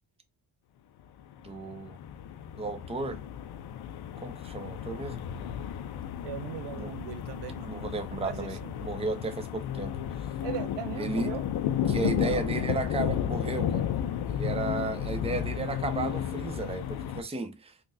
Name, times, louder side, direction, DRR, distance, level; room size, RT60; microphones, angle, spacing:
sound 1, 1.3-17.2, left 10 dB, 55° left, 0.5 m, -33 dB
voice 1, 1.4-2.0 2.6-3.2 4.2-5.6 6.8-7.0 7.7-10.0 11.0-11.4 11.9-13.9 14.3-17.7, right 3 dB, 15° right, 0.7 m, -34 dB
voice 2, 6.2-7.8 8.2-8.7 10.4-11.4 11.8-12.4, right 12 dB, 60° right, 0.5 m, -39 dB
3.7 x 2.6 x 2.5 m
supercardioid pair, 50°, 47 cm